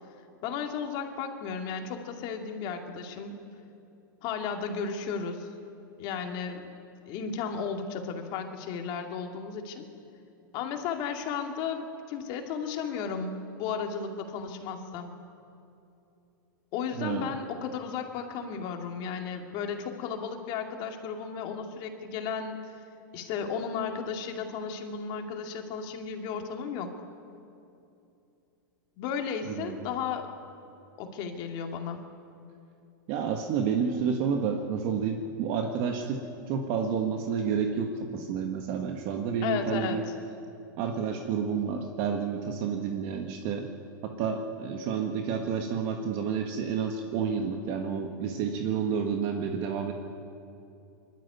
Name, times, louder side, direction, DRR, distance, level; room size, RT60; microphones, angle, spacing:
voice 1, 0.4-3.3 4.2-5.5 6.0-6.7 7.1-9.8 10.5-15.1 16.7-22.6 23.1-26.9 29.0-30.3 31.0-32.0 39.4-40.0, left 6 dB, 45° left, 4 dB, 2.4 m, -34 dB
voice 2, 29.5-29.9 33.1-36.2 36.5-40.0 40.8-43.7 44.0-49.9, right 6 dB, 45° right, 3 dB, 1.6 m, -30 dB
22.0 x 12.5 x 9.7 m, 2.7 s
hypercardioid pair, 130°, 11 cm